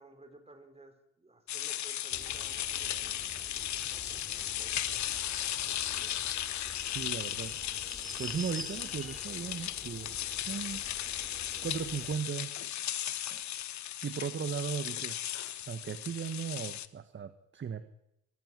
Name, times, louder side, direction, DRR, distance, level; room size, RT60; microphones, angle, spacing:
voice 1, 0.0-3.5 3.9-6.2, right 2 dB, 20° right, 8 dB, 4.8 m, -56 dB
sound 1, 1.5-16.9, left 12 dB, 70° left, 1.2 m, -36 dB
sound 2, 2.1-12.2, equal, ahead, 4.8 m, -49 dB
voice 2, 6.9-7.5 8.2-10.2 10.5-10.8 11.6-12.5 13.3-13.4 14.0-15.2 15.7-17.9, right 7 dB, 40° right, 11 dB, 1.4 m, -37 dB
24.0 x 15.0 x 9.9 m, 0.82 s
cardioid pair, 90°, 30 cm